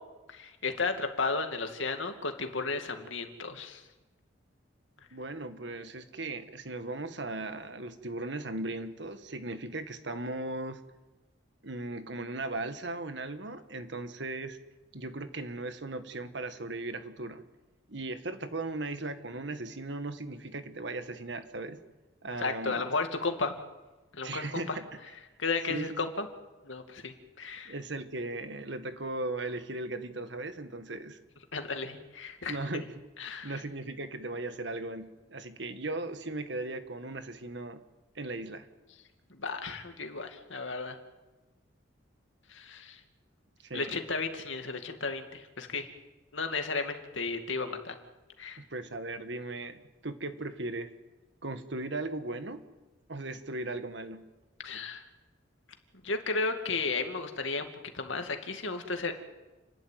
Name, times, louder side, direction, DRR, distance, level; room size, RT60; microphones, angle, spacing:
voice 1, 0.3-3.8 22.4-23.5 24.1-24.8 25.4-26.3 26.6-27.7 31.5-32.8 33.2-33.6 39.3-41.0 42.5-43.0 43.7-45.9 46.3-48.0 48.4-48.6 54.6-55.0 56.0-57.7 57.9-59.1, left 4 dB, 80° left, 6 dB, 2.4 m, -34 dB
voice 2, 5.1-10.8 11.6-14.6 14.9-17.4 17.9-21.8 22.2-22.9 24.2-24.9 25.7-25.9 27.7-31.2 32.5-32.9 33.3-37.8 38.2-38.7 43.6-44.0 48.6-50.9 51.4-52.6 53.1-54.3, right 2 dB, 65° right, 9 dB, 1.6 m, -37 dB
29.5 x 12.0 x 9.3 m, 1.1 s
head